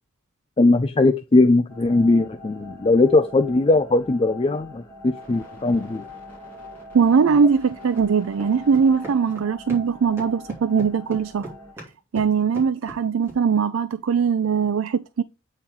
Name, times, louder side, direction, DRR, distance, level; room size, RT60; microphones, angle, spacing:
voice 1, 0.6-6.0, left 2 dB, 25° left, 0.4 m, -19 dB
sound 1, 1.7-11.7, left 1 dB, 10° left, 3.6 m, -43 dB
sound 2, 4.4-4.6 6.0-6.1 7.4-7.5 7.9-8.1 8.3-9.9 10.2-13.4, right 2 dB, 10° right, 2.8 m, -39 dB
voice 2, 6.9-11.5 12.1-15.2, right 6 dB, 70° right, 0.4 m, -20 dB
8.5 x 4.4 x 3.7 m
head